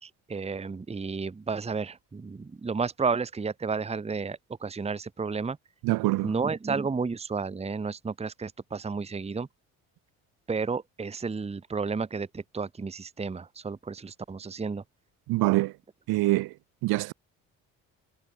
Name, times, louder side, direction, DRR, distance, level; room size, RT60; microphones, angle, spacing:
voice 1, 0.0-5.6 6.2-9.5 10.5-14.8, right 5 dB, 15° right, 1.0 m, -32 dB
voice 2, 5.8-6.3 15.3-15.7 16.1-16.5 16.8-17.1, right 20 dB, 70° right, 1.6 m, -24 dB
hypercardioid pair, 65°, 38 cm